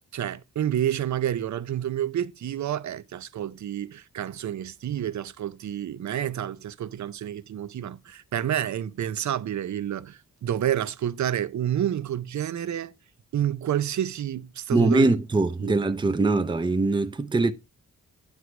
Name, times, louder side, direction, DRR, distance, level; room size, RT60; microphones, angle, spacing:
voice 1, 0.1-12.9 13.3-15.2 15.6-15.8, right 10 dB, 60° right, 0.5 m, -29 dB
voice 2, 14.7-17.5, right 3 dB, 15° right, 0.5 m, -22 dB
9.6 x 3.2 x 5.9 m
wide cardioid pair, 105°, 33 cm